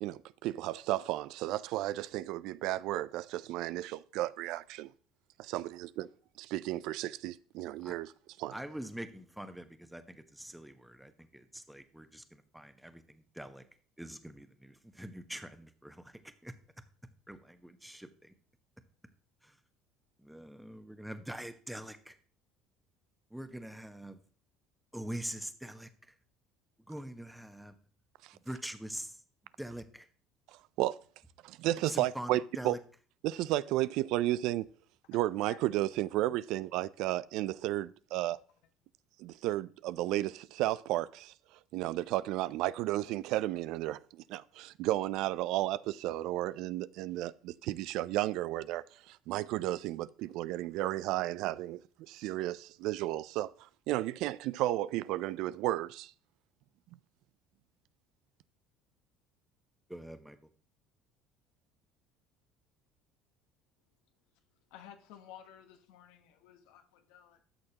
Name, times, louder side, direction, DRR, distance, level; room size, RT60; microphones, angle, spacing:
voice 1, 0.0-4.9 5.4-5.9 6.5-8.1 8.4-8.5 30.8-31.0 31.4-32.4 32.6-32.8 33.2-34.7 35.1-38.4 39.2-41.3 41.7-53.5 53.9-56.1, right 15 dB, 70° right, 0.3 m, -33 dB
voice 2, 8.5-13.6 14.0-16.5 17.3-18.3 19.4-19.6 20.2-22.2 23.3-24.2 24.9-26.2 26.8-27.8 28.3-29.2 29.6-30.1 31.9-32.8 59.9-60.5, right 1 dB, 5° right, 1.1 m, -44 dB
voice 3, 64.7-67.4, left 10 dB, 75° left, 1.1 m, -53 dB
13.0 x 6.4 x 2.9 m
hypercardioid pair, 75°, 0 cm